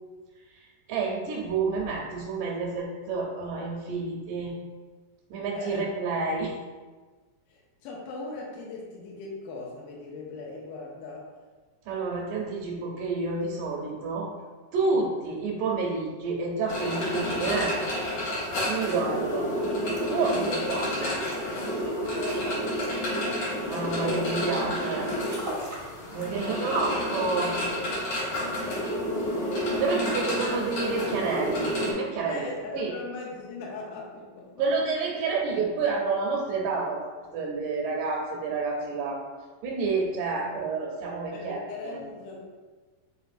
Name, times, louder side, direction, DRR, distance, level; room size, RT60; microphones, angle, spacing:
voice 1, 0.5-4.5 5.3-6.6 11.9-14.3 14.7-17.8 18.4-19.5 20.1-21.2 23.7-25.1 26.1-27.5 29.8-32.5 32.7-32.9 34.6-37.0 37.3-39.2 39.6-41.6 41.9-42.0, right 4 dB, 80° right, -2 dB, 2.0 m, -29 dB
voice 2, 5.5-5.9 7.5-11.3 14.9-15.1 15.8-15.9 22.1-23.0 26.1-26.7 28.4-29.5 32.2-34.6 41.3-42.4, left 3 dB, 85° left, -3 dB, 2.2 m, -40 dB
sound 1, 16.7-31.9, equal, 60° left, 2.6 m, -30 dB
sound 2, 19.9-20.0 20.3-20.5 21.0-21.4 21.8-21.9 22.2-23.0 23.5-24.3 24.8-24.9 25.2-25.8 26.1-26.5, right 1 dB, 55° right, 0.9 m, -37 dB
5.6 x 3.8 x 2.4 m, 1.3 s
omnidirectional pair, 3.8 m